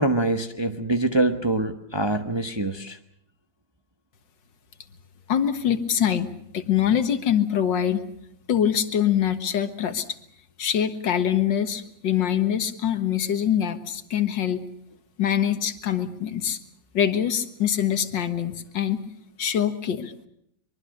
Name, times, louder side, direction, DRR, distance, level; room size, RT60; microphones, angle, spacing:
voice 1, 0.0-3.0, right 2 dB, 20° right, 6 dB, 1.0 m, -24 dB
voice 2, 5.3-8.1 8.5-10.1 10.6-14.6 15.2-16.6 16.9-19.0 19.4-20.1, left 9 dB, 75° left, 9 dB, 2.1 m, -24 dB
24.0 x 23.0 x 6.6 m, 0.72 s
omnidirectional pair, 2.0 m